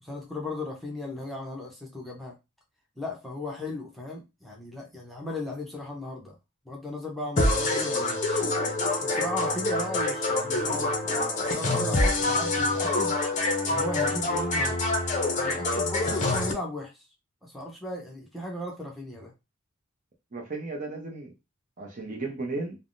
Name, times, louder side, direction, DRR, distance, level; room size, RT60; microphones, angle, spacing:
voice 1, 0.0-2.3 3.0-6.3 6.6-8.4 9.0-13.2 13.7-14.8 15.4-17.1 17.4-19.3, left 1 dB, ahead, 0.7 m, -36 dB
sound 1, 7.4-16.5, left 2 dB, 35° left, 0.6 m, -26 dB
voice 2, 20.3-21.3 21.8-22.8, right 3 dB, 35° right, 0.7 m, -34 dB
3.3 x 2.1 x 2.6 m
head